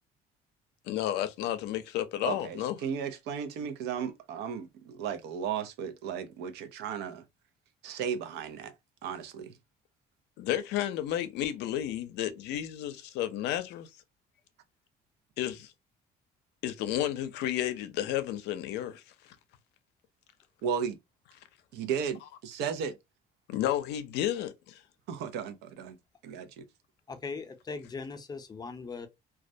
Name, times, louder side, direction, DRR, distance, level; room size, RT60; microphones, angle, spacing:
voice 1, 0.9-2.8 10.4-13.9 15.4-15.7 16.6-19.0 23.5-24.8, left 12 dB, 80° left, 0.5 m, -32 dB
voice 2, 2.2-7.2 7.8-8.7 9.0-9.5 20.6-21.0 21.7-23.0 25.1-26.0 26.2-26.6, right 7 dB, 85° right, 0.5 m, -35 dB
voice 3, 27.1-29.1, left 4 dB, 25° left, 0.5 m, -39 dB
2.3 x 2.1 x 2.6 m
cardioid pair, 110°, 17 cm